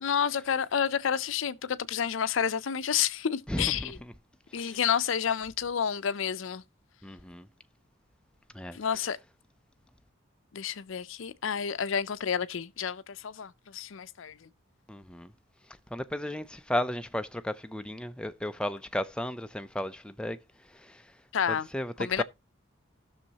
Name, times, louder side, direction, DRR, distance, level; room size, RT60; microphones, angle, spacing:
voice 1, 0.0-4.0 4.5-6.6 8.7-9.2 10.5-14.4 21.3-21.7 22.0-22.2, left 8 dB, 70° left, 0.5 m, -30 dB
voice 2, 3.5-4.1 4.5-4.8 7.0-7.5 8.5-8.8 14.9-15.3 15.9-20.4 20.7-21.1 21.5-22.2, left 1 dB, 5° left, 0.4 m, -34 dB
16.0 x 6.3 x 2.8 m
head